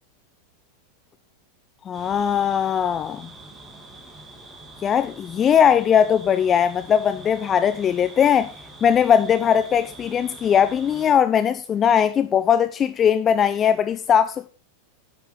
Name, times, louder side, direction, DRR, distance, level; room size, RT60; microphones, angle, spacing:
voice 1, 1.9-3.3 4.8-8.5 8.8-14.5, left 8 dB, 25° left, 0.5 m, -19 dB
sound 1, 1.9-11.1, right 2 dB, 15° right, 2.3 m, -44 dB
11.0 x 6.7 x 3.9 m
figure-of-eight pair, 90°, 0 cm